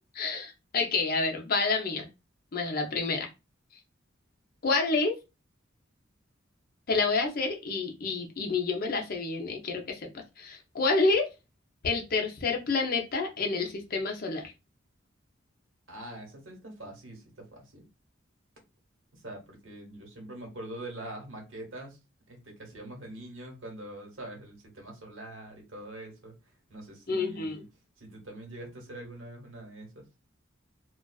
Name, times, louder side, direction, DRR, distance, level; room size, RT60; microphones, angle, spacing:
voice 1, 0.1-2.1 2.5-3.3 4.6-5.2 6.9-10.0 10.4-11.3 11.8-14.5 27.1-27.6, left 3 dB, 50° left, 3 dB, 0.6 m, -28 dB
voice 2, 15.9-17.9 19.1-22.0 22.3-26.4 26.7-27.7 28.0-30.1, right 1 dB, 75° right, 1 dB, 1.1 m, -44 dB
2.3 x 2.3 x 2.3 m, 0.26 s
head